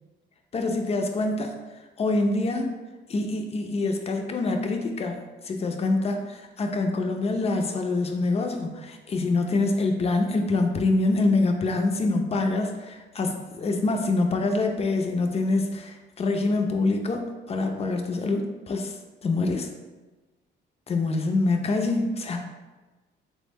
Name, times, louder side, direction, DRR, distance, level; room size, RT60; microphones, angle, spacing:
voice 1, 0.5-1.5 2.0-2.8 3.1-18.9 19.2-19.7 20.9-22.4, left 2 dB, 30° left, 4 dB, 0.4 m, -25 dB
3.3 x 2.1 x 3.3 m, 1.2 s
cardioid pair, 90°, 20 cm